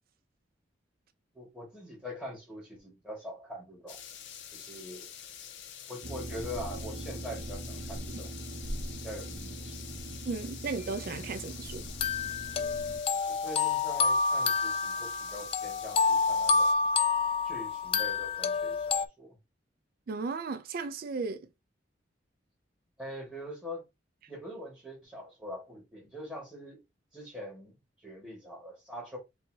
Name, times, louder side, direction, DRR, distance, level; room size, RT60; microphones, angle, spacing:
voice 1, 1.3-4.0 4.5-5.1 5.9-8.4 9.0-9.9 13.3-16.8 17.4-19.4 23.0-23.9 24.3-26.8 27.1-29.2, equal, 5° right, 1.8 m, -43 dB
sound 1, 3.9-16.7, left 9 dB, 75° left, 0.6 m, -47 dB
sound 2, 6.0-13.0, right 1 dB, 35° right, 0.8 m, -41 dB
voice 2, 10.3-11.9 20.1-21.5, right 4 dB, 50° right, 0.4 m, -35 dB
sound 3, 11.0-11.1 12.0-19.1, left 5 dB, 30° left, 0.3 m, -28 dB
5.4 x 2.7 x 2.7 m
head